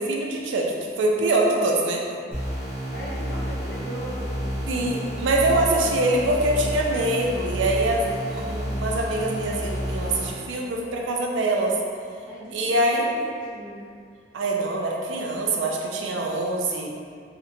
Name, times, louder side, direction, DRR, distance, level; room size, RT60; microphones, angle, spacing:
voice 1, 0.0-2.0 4.7-11.7 12.5-13.1 14.3-16.9, right 2 dB, 85° right, 0 dB, 0.4 m, -24 dB
sound 1, 2.3-10.3, equal, 15° right, 0.6 m, -30 dB
voice 2, 2.9-4.6 5.4-6.1 6.5-6.7 12.3-12.6 12.9-13.9, equal, 75° left, -8 dB, 0.7 m, -38 dB
2.7 x 2.1 x 2.6 m, 2.2 s
head